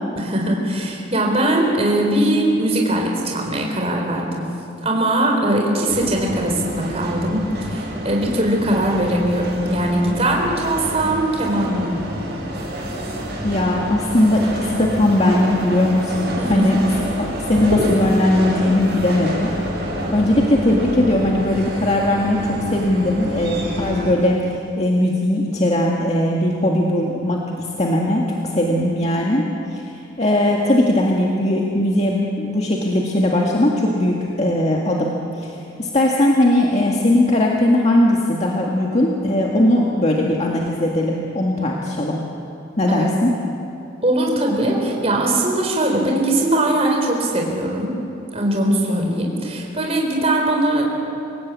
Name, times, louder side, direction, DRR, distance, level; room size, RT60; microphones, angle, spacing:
voice 1, 0.2-4.5 4.8-12.0 16.4-16.7 42.9-43.1 44.0-47.9 48.3-50.9, right 1 dB, 30° right, 0 dB, 4.1 m, -20 dB
sound 1, 5.9-24.1, equal, 55° right, 7.8 m, -28 dB
voice 2, 13.4-16.8 17.2-19.5 20.1-24.4 24.8-29.5 29.7-35.5 35.8-42.2 42.8-43.3, left 1 dB, 35° left, -2 dB, 1.9 m, -19 dB
27.5 x 17.5 x 8.5 m, 2.6 s
head